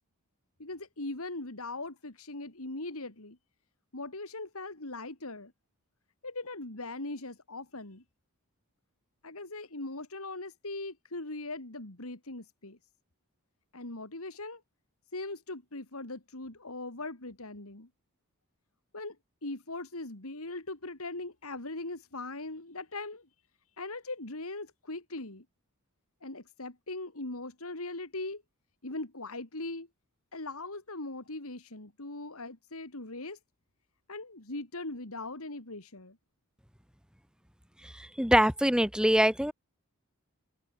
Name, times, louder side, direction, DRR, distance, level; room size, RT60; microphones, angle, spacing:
voice 1, 0.6-3.4 3.9-5.5 6.2-8.0 9.2-12.8 13.7-14.6 15.1-17.9 18.9-19.2 19.4-23.3 23.8-25.4 26.2-28.4 28.8-29.9 30.3-33.4 34.1-36.2, left 2 dB, 70° left, 3.1 m, -40 dB
voice 2, 37.8-39.5, equal, 5° right, 1.9 m, -24 dB
open air
head